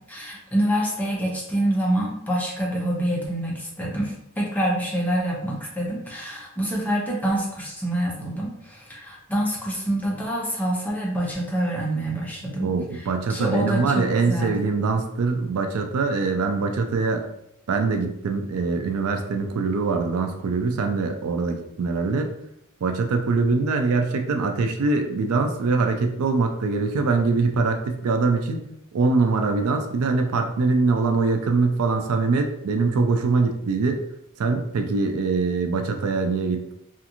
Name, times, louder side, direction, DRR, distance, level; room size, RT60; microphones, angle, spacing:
voice 1, 0.1-14.7, right 1 dB, 10° left, -4 dB, 0.7 m, -26 dB
voice 2, 12.6-17.2 17.7-22.3 22.8-34.0 34.4-36.7, right 4 dB, 75° right, 5 dB, 0.4 m, -23 dB
2.5 x 2.4 x 2.8 m, 0.77 s
head